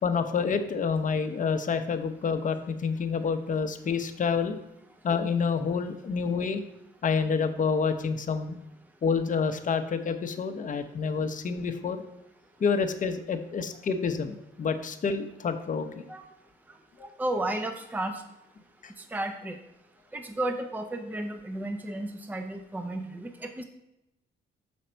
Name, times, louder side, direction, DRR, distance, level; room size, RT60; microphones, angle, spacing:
voice 1, 0.0-4.6 5.0-6.6 7.0-8.6 9.0-12.0 12.6-16.1 17.0-17.1 18.8-18.9, left 5 dB, 40° left, 8 dB, 0.7 m, -28 dB
voice 2, 17.2-18.2 19.1-19.6 20.1-23.6, right 1 dB, 10° right, 5 dB, 0.6 m, -33 dB
6.4 x 5.2 x 4.4 m, 0.89 s
cardioid pair, 90°, 20 cm